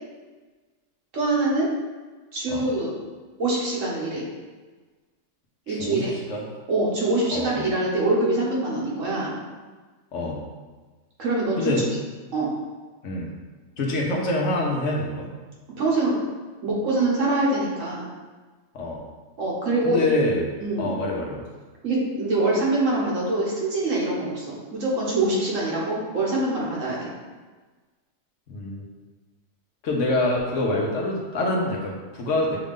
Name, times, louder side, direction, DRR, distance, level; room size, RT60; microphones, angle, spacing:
voice 1, 1.1-1.7 2.3-2.9 3.4-4.2 5.7-6.1 6.7-9.3 11.2-11.7 12.3-12.5 15.8-16.2 16.6-18.0 19.4-20.0 20.6-20.9 21.8-27.1, right 2 dB, 75° right, -4 dB, 1.5 m, -24 dB
voice 2, 5.7-6.4 7.3-7.6 10.1-10.4 11.6-11.9 13.0-13.3 13.8-15.3 18.7-19.0 19.8-20.5 20.8-21.4 28.5-28.9 29.8-32.6, left 2 dB, 75° left, -1 dB, 1.1 m, -25 dB
5.7 x 2.5 x 3.6 m, 1.3 s
omnidirectional pair, 1.3 m